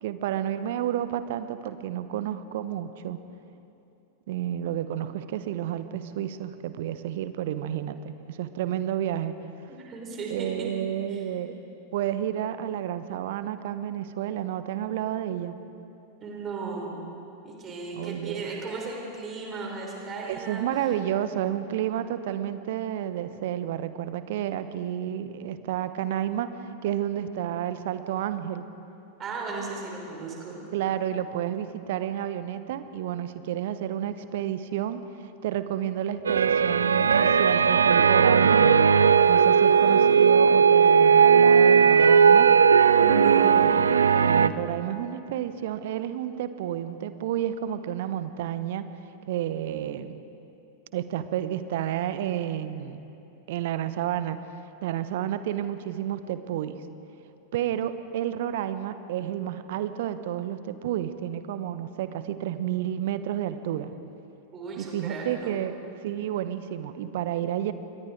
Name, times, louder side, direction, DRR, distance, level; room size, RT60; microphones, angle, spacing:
voice 1, 0.0-3.2 4.3-9.3 10.3-11.6 11.9-15.6 17.9-18.5 20.2-26.5 26.8-28.7 30.7-38.6 39.3-42.5 44.1-48.8 49.3-50.2 50.9-53.0 53.5-54.4 54.8-56.7 57.5-63.9 64.8-65.8 66.0-67.7, right 11 dB, 55° right, 12 dB, 1.1 m, -30 dB
voice 2, 9.7-10.7 11.1-11.2 16.2-17.0 17.4-20.7 29.2-30.6 43.0-43.7 64.5-65.6, right 3 dB, 25° right, -1 dB, 5.3 m, -35 dB
sound 1, 36.2-44.5, right 6 dB, 70° right, 0.6 m, -18 dB
28.5 x 23.0 x 4.8 m, 2.8 s
figure-of-eight pair, 90°, 0 cm